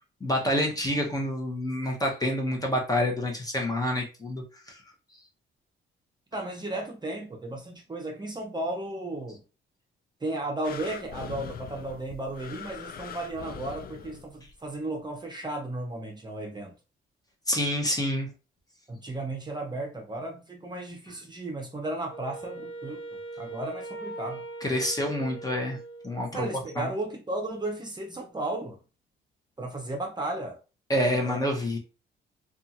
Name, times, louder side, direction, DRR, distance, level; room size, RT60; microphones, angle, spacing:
voice 1, 0.2-4.8 17.5-18.3 24.6-25.8 26.0-26.5 26.8-26.9 30.9-31.8, left 1 dB, 20° left, 0.8 m, -27 dB
voice 2, 6.3-9.4 10.2-16.7 18.9-23.0 23.4-24.4 26.3-28.8 29.6-30.6 31.2-31.4, right 2 dB, 20° right, 0.7 m, -34 dB
sound 1, 10.6-14.6 15.2-15.3, left 7 dB, 50° left, 0.4 m, -42 dB
Wind instrument woodwind instrument, 22.1-26.5, right 2 dB, 65° left, 0.8 m, -40 dB
2.6 x 2.4 x 2.8 m
cardioid pair, 90°, 20 cm